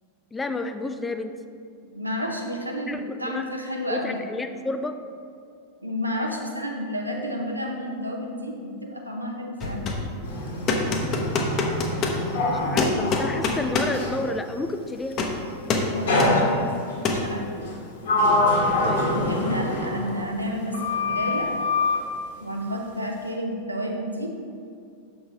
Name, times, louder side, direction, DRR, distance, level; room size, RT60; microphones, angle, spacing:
voice 1, 0.3-1.4 2.9-3.5 3.9-5.0 12.5-15.2 18.8-19.1, left 2 dB, 15° left, 8 dB, 0.3 m, -31 dB
voice 2, 1.9-4.2 5.8-9.9 15.9-16.6 17.1-17.5 19.0-21.5 22.4-24.3, equal, 85° right, 1 dB, 0.7 m, -31 dB
sound 1, 9.6-10.1 10.7-12.2 12.8-14.0 15.1-15.4 15.7-15.9 16.2-16.4 17.0-17.3, left 3 dB, 35° left, 0.7 m, -25 dB
Sliding door, 10.2-14.3 16.1-17.0 17.6-20.5 20.7-22.1, left 2 dB, 60° left, 1.4 m, -25 dB
6.4 x 5.8 x 2.8 m, 2.4 s
figure-of-eight pair, 90°, 0 cm